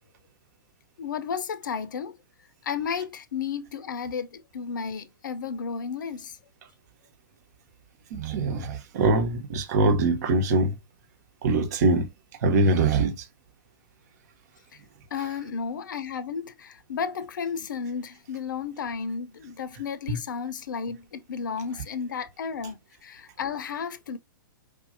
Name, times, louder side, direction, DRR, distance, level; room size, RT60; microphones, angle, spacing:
voice 1, 1.0-2.1 2.6-6.4 15.1-24.2, left 6 dB, 60° left, 0.6 m, -33 dB
voice 2, 8.1-10.8 11.4-12.1 12.4-13.3 15.2-15.3 20.1-20.2, right 2 dB, 50° right, 1.1 m, -23 dB
5.0 x 2.6 x 2.7 m
figure-of-eight pair, 115°, 12 cm